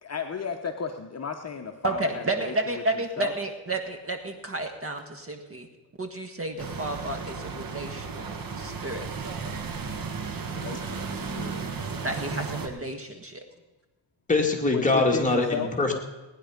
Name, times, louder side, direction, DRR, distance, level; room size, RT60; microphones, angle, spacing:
voice 1, 0.0-3.3 10.5-11.7 14.7-15.7, left 6 dB, 30° left, 4 dB, 1.1 m, -34 dB
voice 2, 1.8-5.7 6.0-9.0 12.0-13.4, right 2 dB, 30° right, 6 dB, 1.7 m, -31 dB
sound 1, 6.6-12.7, right 5 dB, 45° right, 1.8 m, -34 dB
voice 3, 14.3-15.9, left 3 dB, 15° left, 0 dB, 2.5 m, -23 dB
19.0 x 10.5 x 5.2 m, 1.1 s
cardioid pair, 100°, 48 cm